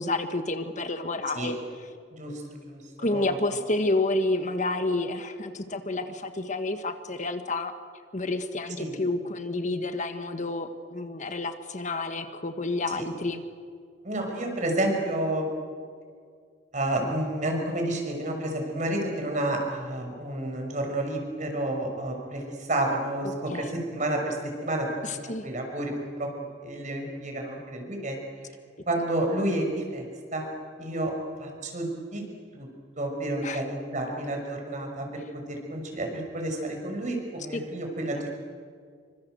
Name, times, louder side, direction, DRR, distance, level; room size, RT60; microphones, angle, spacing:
voice 1, 0.0-1.6 3.0-7.7 8.1-13.4 23.5-23.7 25.0-25.5 33.4-33.6 37.5-37.6 38.1-38.2, left 2 dB, 40° left, 8 dB, 1.5 m, -29 dB
voice 2, 2.1-3.4 8.8-8.9 12.9-13.0 14.0-15.5 16.7-24.9 25.4-26.3 26.6-28.2 28.9-30.0 30.3-30.5 30.8-31.1 31.4-32.2 32.5-32.7 33.0-35.1 35.3-38.3, right 1 dB, 45° right, 3 dB, 6.2 m, -30 dB
27.5 x 25.0 x 8.0 m, 2.1 s
head